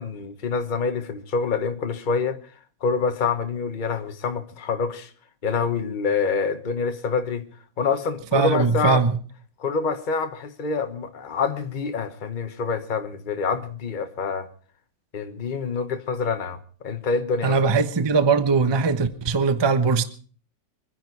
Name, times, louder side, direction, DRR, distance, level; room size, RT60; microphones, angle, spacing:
voice 1, 0.0-2.4 2.8-5.1 5.4-7.5 7.8-9.1 9.6-14.5 15.1-17.6, left 5 dB, 30° left, 1.1 m, -26 dB
voice 2, 8.3-9.1 17.4-20.0, right 4 dB, 20° right, 0.7 m, -20 dB
24.5 x 10.5 x 4.7 m
omnidirectional pair, 2.0 m